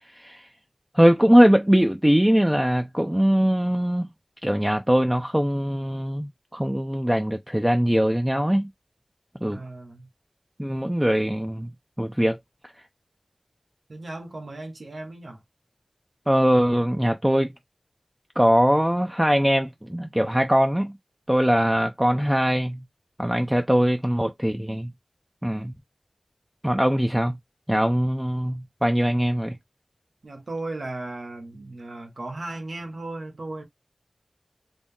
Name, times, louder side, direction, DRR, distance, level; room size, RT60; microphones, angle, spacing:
voice 1, 0.9-4.1 4.4-8.7 9.4-9.6 10.6-11.7 12.0-12.4 16.3-17.5 18.4-20.9 21.3-22.8 23.2-24.9 25.4-25.7 26.6-27.4 27.7-29.6, equal, 10° right, 0.5 m, -21 dB
voice 2, 9.4-10.1 13.9-15.4 30.2-33.6, right 2 dB, 75° right, 1.1 m, -36 dB
3.8 x 2.0 x 3.6 m
wide cardioid pair, 50°, 0 cm